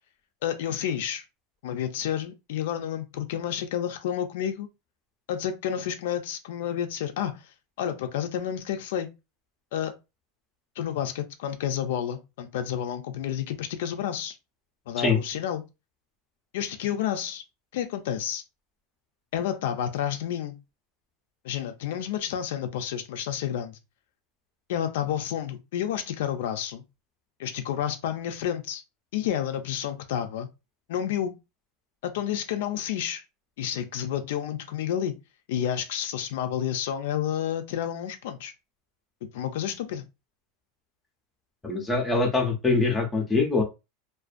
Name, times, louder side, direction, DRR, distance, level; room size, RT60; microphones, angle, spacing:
voice 1, 0.4-1.2 1.6-4.7 5.3-7.5 7.8-9.1 9.7-10.0 10.8-14.4 14.9-15.6 16.5-17.4 17.7-18.4 19.3-20.6 21.4-23.8 24.7-26.8 27.4-28.8 29.1-30.5 30.9-31.3 32.0-33.2 33.6-35.2 35.5-38.5 39.3-40.0, left 10 dB, 70° left, 0.3 m, -30 dB
voice 2, 41.6-43.6, left 3 dB, 10° left, 0.5 m, -23 dB
2.5 x 2.1 x 2.4 m
supercardioid pair, 175°, 0 cm